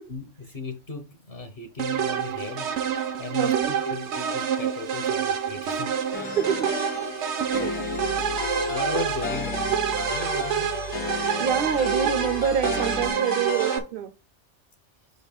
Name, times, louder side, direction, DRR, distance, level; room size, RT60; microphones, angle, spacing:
voice 1, 0.1-2.7 3.2-5.9 7.6-7.7 8.4-10.9, left 4 dB, 55° left, 1.0 m, -37 dB
sound 1, 1.8-13.8, right 8 dB, 85° right, 1.0 m, -28 dB
voice 2, 3.3-3.7 6.3-6.7 7.5-7.8 11.4-14.1, right 8 dB, 60° right, 0.7 m, -27 dB
sound 2, 6.1-13.8, left 4 dB, 80° left, 1.3 m, -33 dB
sound 3, 7.5-13.1, left 6 dB, 40° left, 0.6 m, -40 dB
5.0 x 4.0 x 5.3 m
omnidirectional pair, 1.2 m